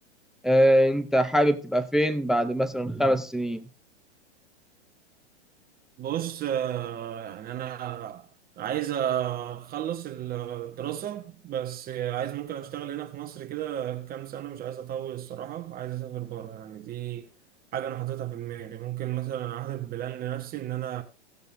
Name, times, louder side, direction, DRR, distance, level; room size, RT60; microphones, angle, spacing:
voice 1, 0.4-3.6, equal, ahead, 0.5 m, -22 dB
voice 2, 6.0-8.3 8.6-17.3 17.7-21.0, right 11 dB, 25° right, 1.1 m, -33 dB
18.0 x 6.8 x 2.6 m
hypercardioid pair, 125°, 35 cm